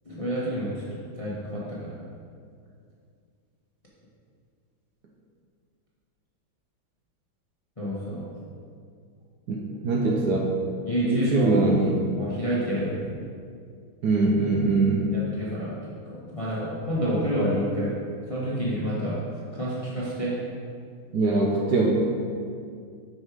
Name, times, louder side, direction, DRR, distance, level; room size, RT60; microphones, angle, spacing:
voice 1, 0.0-2.0 7.8-8.3 10.9-11.5 12.2-12.9 15.1-15.7 16.1-17.9 18.3-19.2 19.5-20.4, equal, 25° left, -7 dB, 0.7 m, -29 dB
voice 2, 9.5-10.4 11.0-12.0 14.0-15.1 21.1-21.9, right 3 dB, 70° right, -2 dB, 1.0 m, -22 dB
5.7 x 5.2 x 4.8 m, 2.2 s
omnidirectional pair, 2.3 m